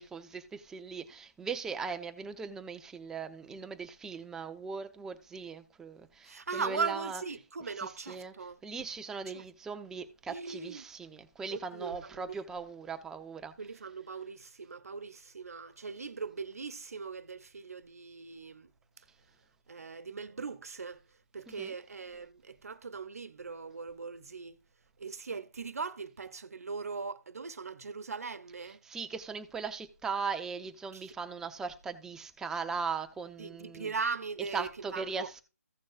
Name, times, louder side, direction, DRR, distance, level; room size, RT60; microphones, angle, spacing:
voice 1, 0.0-7.2 7.8-8.3 8.6-13.5 21.5-21.7 28.8-33.9 34.5-35.4, right 5 dB, 5° right, 0.7 m, -39 dB
voice 2, 6.2-8.6 9.3-9.4 10.3-10.9 11.5-12.4 13.6-18.7 19.7-21.0 21.3-24.6 25.0-28.8 30.9-31.1 33.4-35.4, right 5 dB, 70° right, 1.1 m, -39 dB
15.5 x 6.3 x 2.4 m
figure-of-eight pair, 150°, 9 cm